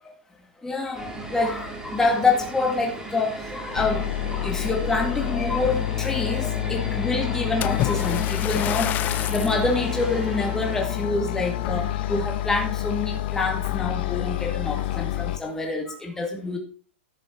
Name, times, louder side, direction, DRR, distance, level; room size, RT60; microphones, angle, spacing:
voice 1, 0.6-16.6, left 3 dB, 10° left, 1 dB, 2.1 m, -27 dB
sound 1, 0.9-10.8, right 3 dB, 5° right, 2.3 m, -37 dB
sound 2, 3.7-15.4, left 13 dB, 55° left, 0.9 m, -28 dB
Splash splatter, 7.6-9.6 10.3-10.5 11.1-11.2, left 14 dB, 25° left, 0.3 m, -29 dB
12.0 x 7.0 x 4.3 m, 0.41 s
hypercardioid pair, 135°, 7 cm